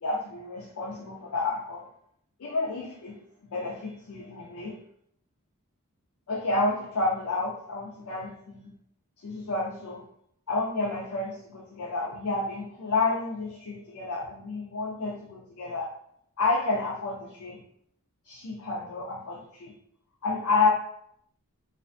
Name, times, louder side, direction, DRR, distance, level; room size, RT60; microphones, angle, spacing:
voice 1, 0.0-1.9 2.4-3.2 3.5-4.8 6.3-8.7 9.2-10.0 10.5-15.9 16.4-17.6 18.3-19.7 20.2-20.7, left 3 dB, 70° left, -4 dB, 0.4 m, -30 dB
2.4 x 2.1 x 2.5 m, 0.68 s
head